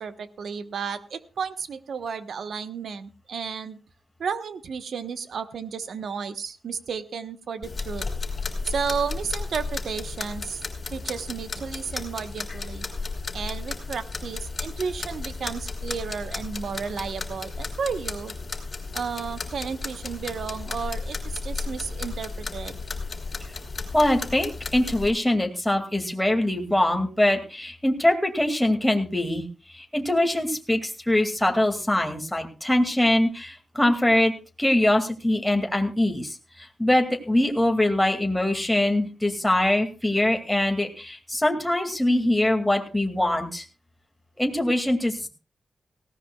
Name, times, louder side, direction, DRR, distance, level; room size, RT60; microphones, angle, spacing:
voice 1, 0.0-3.8 4.2-8.0 8.7-10.6 10.9-12.8 13.3-18.3 18.9-22.8, right 6 dB, 75° right, 10 dB, 1.1 m, -33 dB
sound 1, 7.6-25.1, left 4 dB, 40° left, 3.4 m, -34 dB
voice 2, 23.9-34.3 34.6-43.6 44.4-45.3, left 1 dB, 5° left, 3 dB, 2.3 m, -23 dB
18.0 x 16.5 x 2.3 m, 0.32 s
cardioid pair, 95°, 0 cm